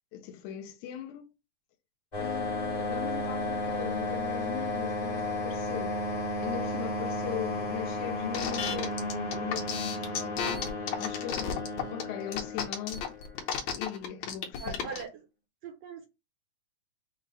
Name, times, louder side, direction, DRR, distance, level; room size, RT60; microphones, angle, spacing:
voice 1, 0.1-1.3 2.2-6.0 6.4-10.5 11.0-11.5 11.9-13.1 13.7-14.9, left 11 dB, 85° left, 2.1 m, -39 dB
sound 1, 2.1-13.5, left 2 dB, 55° left, 0.4 m, -33 dB
sound 2, 8.3-15.0, left 7 dB, 70° left, 2.1 m, -33 dB
voice 2, 14.6-15.2 15.6-16.1, right 6 dB, 75° right, 1.6 m, -40 dB
6.1 x 2.1 x 3.9 m
omnidirectional pair, 3.5 m